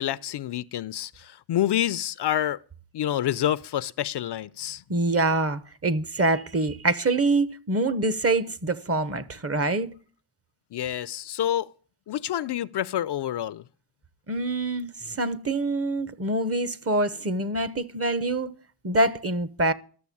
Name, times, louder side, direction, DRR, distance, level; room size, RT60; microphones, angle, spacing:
voice 1, 0.0-2.6 2.9-4.8 10.7-11.7 12.1-13.6, left 11 dB, 60° left, 0.6 m, -28 dB
voice 2, 4.9-9.9 14.3-18.5 18.8-19.7, right 2 dB, 30° right, 1.0 m, -25 dB
13.0 x 6.9 x 8.4 m
cardioid pair, 85°, 46 cm